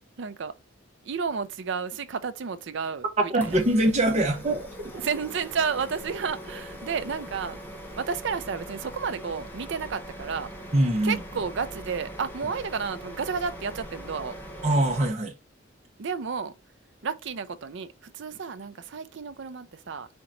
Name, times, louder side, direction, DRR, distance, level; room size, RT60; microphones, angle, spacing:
voice 1, 0.2-0.5 1.0-3.6 4.9-7.6 8.0-10.5 11.0-14.4 16.0-16.5 17.0-20.1, right 5 dB, 65° right, 0.5 m, -31 dB
voice 2, 3.3-4.7 10.7-11.2 14.6-15.3, right 1 dB, 35° right, 1.0 m, -23 dB
sound 1, 3.4-15.1, equal, 10° left, 0.9 m, -41 dB
4.4 x 2.9 x 3.8 m
head